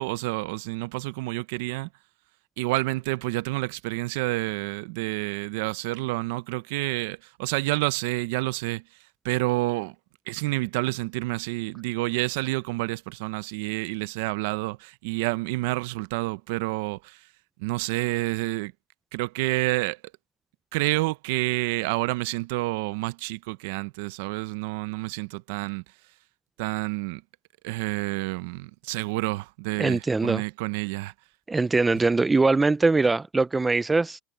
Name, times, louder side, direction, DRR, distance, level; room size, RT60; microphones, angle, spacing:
voice 1, 0.0-1.9 2.6-8.8 9.2-9.9 10.3-17.3 17.6-18.7 19.1-20.0 20.7-25.8 26.6-27.2 27.6-31.1, right 21 dB, 55° right, 0.5 m, -29 dB
voice 2, 29.8-30.4 31.5-34.2, right 3 dB, 10° right, 0.3 m, -22 dB
supercardioid pair, 180°, 0 cm